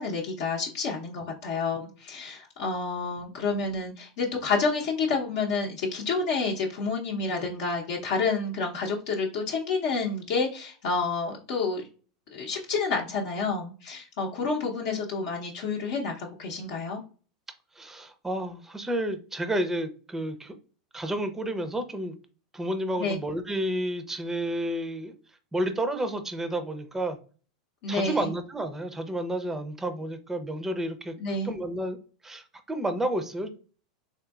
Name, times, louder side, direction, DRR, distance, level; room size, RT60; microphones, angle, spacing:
voice 1, 0.0-11.8 12.3-17.0 23.0-23.2 27.8-28.3 31.2-31.5, left 4 dB, 60° left, -2 dB, 0.7 m, -29 dB
voice 2, 17.8-20.5 20.9-22.1 22.5-25.2 25.5-27.2 27.9-31.1 31.4-32.0 32.2-33.5, right 1 dB, 10° right, 8 dB, 0.5 m, -30 dB
3.7 x 2.6 x 2.3 m, 0.38 s
hypercardioid pair, 110°, 4 cm